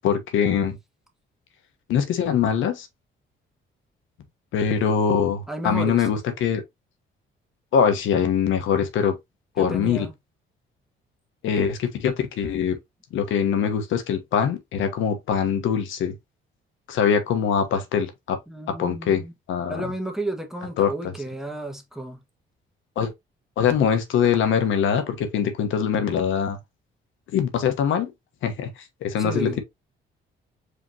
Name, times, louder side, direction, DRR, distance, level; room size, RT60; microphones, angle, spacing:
voice 1, 0.0-0.8 1.9-2.9 4.5-6.6 7.7-9.2 9.6-10.1 11.4-12.8 13.1-16.1 16.9-18.4 18.8-19.2 19.5-19.8 20.8-20.9 23.0-23.1 23.6-26.6 27.3-28.1 28.4-29.6, left 7 dB, 80° left, 1.1 m, -23 dB
voice 2, 5.5-6.1 9.6-10.1 18.5-19.3 19.7-22.2 29.2-29.6, right 1 dB, ahead, 1.3 m, -32 dB
5.0 x 3.0 x 2.7 m
cardioid pair, 90°, 20 cm